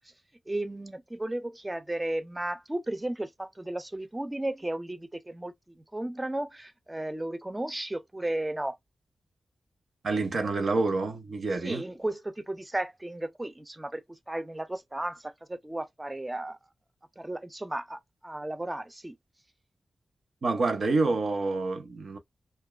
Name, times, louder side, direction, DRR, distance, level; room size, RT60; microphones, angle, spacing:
voice 1, 0.5-8.8 11.6-16.6 17.2-19.2, right 1 dB, 10° right, 0.4 m, -34 dB
voice 2, 10.0-11.8 20.4-22.2, right 3 dB, 50° right, 0.6 m, -27 dB
2.6 x 2.2 x 2.2 m
wide cardioid pair, 170°, 0 cm